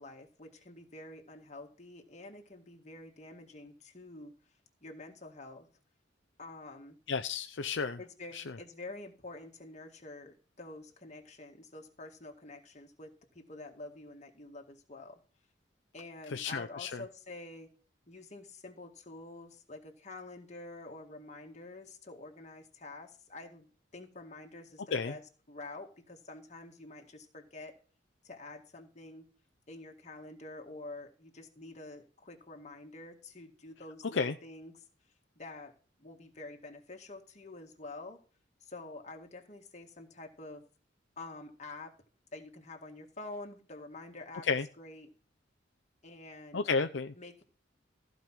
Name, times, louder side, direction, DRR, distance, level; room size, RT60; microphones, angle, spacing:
voice 1, 0.0-4.3 4.8-5.7 6.4-7.0 8.0-15.2 15.9-17.7 18.1-25.2 25.5-27.7 28.2-29.3 29.7-34.8 35.4-35.7 36.0-38.2 38.6-40.6 41.2-41.9 42.3-44.5 44.8-45.1 46.0-46.6 47.2-47.4, left 2 dB, 35° left, 2 dB, 2.0 m, -48 dB
voice 2, 7.1-8.0 8.3-8.6 16.3-17.0 24.9-25.1 34.1-34.3 44.4-44.7 46.5-47.1, left 5 dB, 70° left, 8 dB, 0.6 m, -32 dB
14.5 x 5.2 x 6.0 m, 0.39 s
head